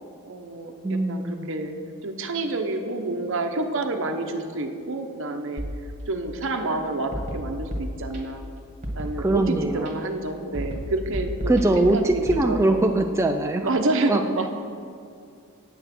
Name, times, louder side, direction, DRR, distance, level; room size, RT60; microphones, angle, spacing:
voice 1, 0.2-1.7 2.0-5.6 6.1-8.5 8.9-12.8 13.6-14.5, right 2 dB, 60° right, 5 dB, 0.9 m, -28 dB
voice 2, 0.8-1.5 9.2-10.0 11.5-13.8 14.1-14.2, right 2 dB, 15° right, 4 dB, 0.3 m, -22 dB
sound 1, 5.6-6.5 7.1-8.5 8.8-9.9 10.5-12.4, equal, 35° right, 1.5 m, -33 dB
9.0 x 7.8 x 5.9 m, 2.5 s
head